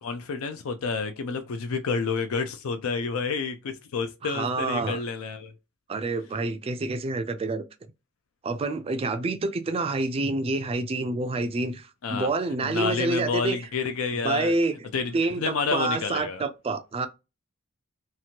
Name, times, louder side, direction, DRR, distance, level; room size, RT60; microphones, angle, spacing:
voice 1, 0.0-5.5 12.0-12.3 12.6-14.5 14.9-16.4, left 5 dB, 75° left, 0.4 m, -29 dB
voice 2, 4.2-5.0 5.9-7.6 8.4-13.6 14.2-14.8 15.1-17.1, right 3 dB, 25° right, 0.3 m, -27 dB
2.9 x 2.4 x 2.8 m
head